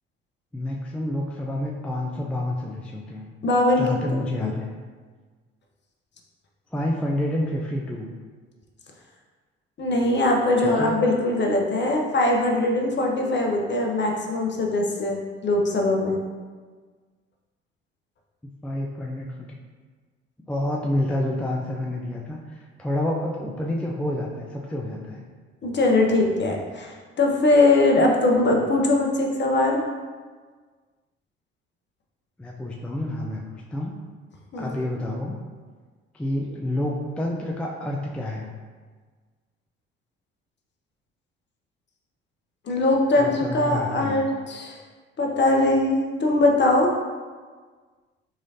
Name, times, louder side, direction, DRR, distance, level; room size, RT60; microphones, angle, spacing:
voice 1, 0.5-3.3 3.8-4.7 6.7-8.1 10.6-10.9 18.6-19.5 20.5-25.2 32.4-33.9 34.6-35.4 36.1-38.5 43.2-44.2, left 1 dB, 5° left, -1 dB, 0.4 m, -28 dB
voice 2, 3.4-4.5 9.8-16.2 25.6-29.8 34.5-34.8 42.7-44.8 45.2-46.9, left 2 dB, 35° left, 1 dB, 0.8 m, -21 dB
3.8 x 3.1 x 2.7 m, 1.5 s
hypercardioid pair, 55°, 31 cm